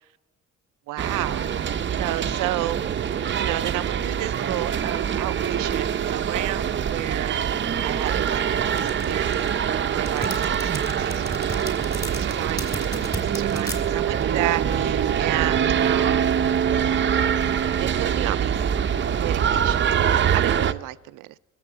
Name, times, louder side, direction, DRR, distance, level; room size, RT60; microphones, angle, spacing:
voice 1, 0.9-2.8 3.3-9.6 9.9-12.8 13.2-16.3 17.8-18.6 19.1-21.3, right 18 dB, 90° right, 0.5 m, -32 dB
sound 1, 1.0-20.7, right 8 dB, 40° right, 0.6 m, -24 dB
sound 2, 8.8-13.8, equal, 10° left, 3.1 m, -34 dB
20.0 x 7.7 x 7.9 m
cardioid pair, 90°, 30 cm